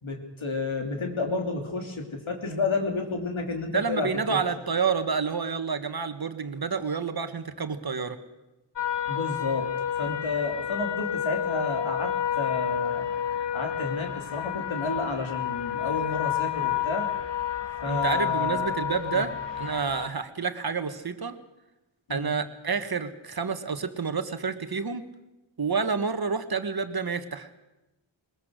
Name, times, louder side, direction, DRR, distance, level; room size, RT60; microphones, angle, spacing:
voice 1, 0.0-4.4 9.1-9.7 10.0-13.1 13.5-17.1 17.8-18.7 19.1-19.3 22.1-22.3, left 3 dB, 80° left, 3 dB, 3.2 m, -31 dB
voice 2, 3.7-8.2 17.8-21.3 22.1-25.0 25.6-27.5, right 5 dB, 50° right, 9 dB, 1.4 m, -29 dB
sound 1, 8.8-20.1, left 10 dB, 65° left, 1.4 m, -30 dB
21.5 x 21.0 x 6.5 m, 1.0 s
wide cardioid pair, 80°, 47 cm